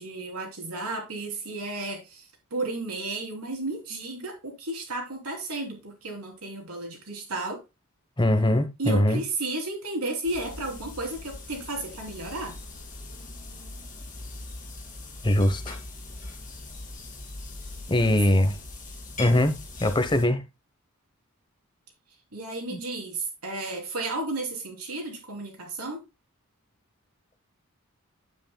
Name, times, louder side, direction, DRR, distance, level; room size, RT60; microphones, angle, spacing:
voice 1, 0.0-7.6 8.8-12.6 18.1-18.2 22.3-26.0, right 2 dB, 90° right, 3.2 m, -33 dB
voice 2, 8.2-9.2 15.2-15.8 17.9-18.6 19.2-19.5 19.8-20.4 22.7-22.8, left 1 dB, 20° left, 0.9 m, -22 dB
sound 1, 10.2-20.2, left 2 dB, 35° left, 2.6 m, -41 dB
9.5 x 8.6 x 2.2 m
head